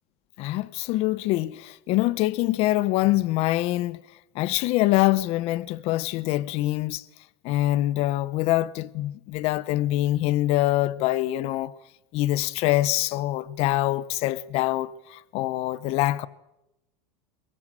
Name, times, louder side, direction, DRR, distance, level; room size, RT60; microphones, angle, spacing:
voice 1, 0.4-4.0 4.3-7.0 7.4-11.7 12.1-16.3, left 16 dB, 45° left, 0.8 m, -24 dB
22.5 x 18.0 x 9.0 m
supercardioid pair, 145°, 14 cm